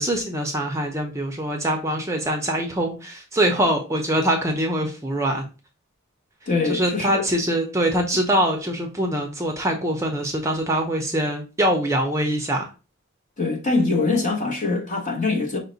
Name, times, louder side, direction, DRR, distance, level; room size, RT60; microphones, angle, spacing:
voice 1, 0.0-5.4 6.7-12.6, right 1 dB, 15° right, 0.6 m, -23 dB
voice 2, 6.5-7.1 13.4-15.6, left 3 dB, 35° left, 1.0 m, -23 dB
5.7 x 2.1 x 3.9 m
head